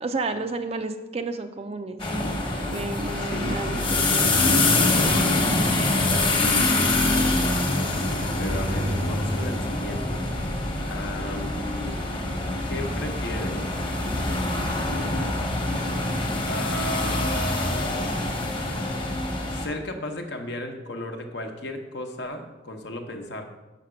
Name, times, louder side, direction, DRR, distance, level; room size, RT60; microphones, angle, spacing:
voice 1, 0.0-2.0 2.7-4.4, right 3 dB, 30° right, 8 dB, 0.4 m, -31 dB
sound 1, 2.0-19.7, left 2 dB, 25° left, 1.1 m, -25 dB
voice 2, 3.2-3.9 5.8-6.7 7.0-7.6 8.4-10.2 10.9-12.0 12.7-13.6 16.5-18.3 19.5-23.4, left 1 dB, 60° left, 4 dB, 0.9 m, -35 dB
5.8 x 5.8 x 6.2 m, 1.1 s
head